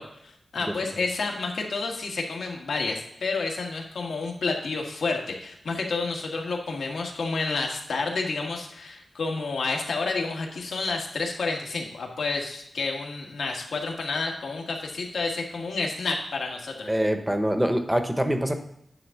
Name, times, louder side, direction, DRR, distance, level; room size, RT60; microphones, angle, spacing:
voice 1, 0.0-16.9, left 3 dB, 85° left, 1 dB, 1.6 m, -30 dB
voice 2, 16.9-18.5, equal, 5° right, 6 dB, 0.8 m, -24 dB
9.7 x 3.7 x 7.0 m, 0.75 s
wide cardioid pair, 170°, 0 cm